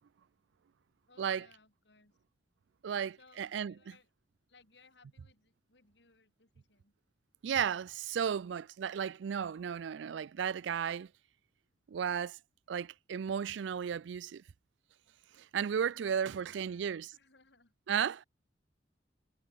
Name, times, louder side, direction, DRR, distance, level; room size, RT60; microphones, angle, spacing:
voice 1, 1.1-2.2 3.2-4.1 4.5-6.9 15.8-16.9 17.1-17.7, left 3 dB, 70° left, 4.0 m, -64 dB
voice 2, 2.8-3.7 7.4-11.1 11.9-12.4 12.7-14.4 15.4-17.1 17.9-18.2, right 8 dB, 80° right, 0.4 m, -34 dB
head